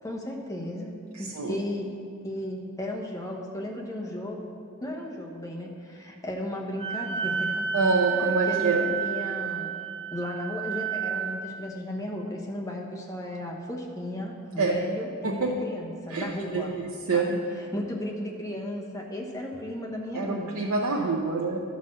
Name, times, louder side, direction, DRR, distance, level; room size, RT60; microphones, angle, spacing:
voice 1, 0.0-0.9 1.2-1.9 2.2-4.5 4.8-7.7 8.1-9.7 10.1-16.7 17.1-20.5 21.0-21.1, left 1 dB, 15° left, -1 dB, 1.1 m, -35 dB
Wind instrument woodwind instrument, 6.8-11.5, right 8 dB, 30° right, 2.4 m, -31 dB
voice 2, 7.7-8.9 14.6-14.8 15.2-15.5 16.1-16.2 16.5-17.3 20.1-21.6, right 4 dB, 70° right, -1 dB, 0.7 m, -26 dB
12.0 x 4.1 x 6.4 m, 2.3 s
head